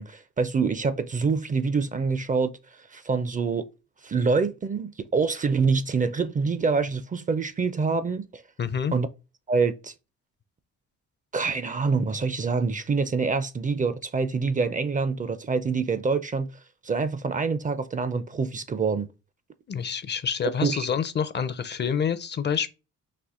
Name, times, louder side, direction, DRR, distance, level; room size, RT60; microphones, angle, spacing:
voice 1, 0.0-2.5 2.8-3.7 4.0-8.4 8.9-9.1 9.5-9.9 11.3-16.5 16.8-19.1 20.6-20.8, right 4 dB, 25° right, 0.4 m, -26 dB
voice 2, 8.6-8.9 19.7-22.7, left 7 dB, 35° left, 0.5 m, -27 dB
4.2 x 2.8 x 3.6 m
cardioid pair, 90°, 30 cm